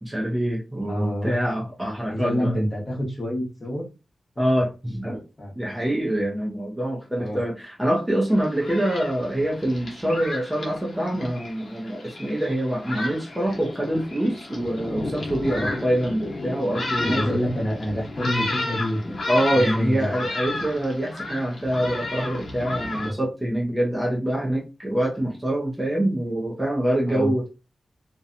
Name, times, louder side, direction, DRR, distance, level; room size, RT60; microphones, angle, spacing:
voice 1, 0.0-2.5 4.4-5.2 5.6-17.3 19.3-27.5, right 1 dB, 10° right, -2 dB, 0.5 m, -25 dB
voice 2, 0.8-1.4 2.1-3.9 5.4-5.5 7.2-7.4 15.5-15.7 17.0-19.2 19.5-20.1 22.9-23.1 27.1-27.3, equal, 30° left, -2 dB, 0.9 m, -27 dB
Thunderstorm, 8.3-23.1, left 2 dB, 70° left, 0.8 m, -32 dB
2.7 x 2.2 x 2.4 m, 0.29 s
wide cardioid pair, 155°, 0 cm